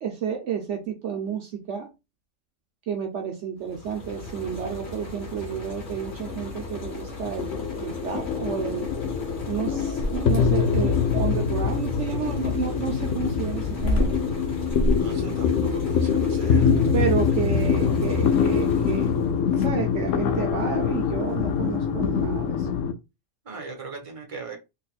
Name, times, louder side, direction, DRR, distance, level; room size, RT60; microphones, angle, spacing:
voice 1, 0.0-1.9 2.9-8.9 9.5-14.2 16.9-19.1 19.6-22.7, right 8 dB, 70° right, 1.0 m, -31 dB
sound 1, 3.6-19.4, left 2 dB, 45° left, 1.2 m, -38 dB
sound 2, 6.1-22.9, left 6 dB, 85° left, 1.0 m, -24 dB
sound 3, 9.9-10.5 12.3-19.2 19.5-19.9 21.2-21.5, left 1 dB, 60° left, 1.0 m, -30 dB
voice 2, 15.0-16.9 23.4-24.6, right 4 dB, 30° right, 1.1 m, -40 dB
4.0 x 2.9 x 2.4 m
omnidirectional pair, 1.3 m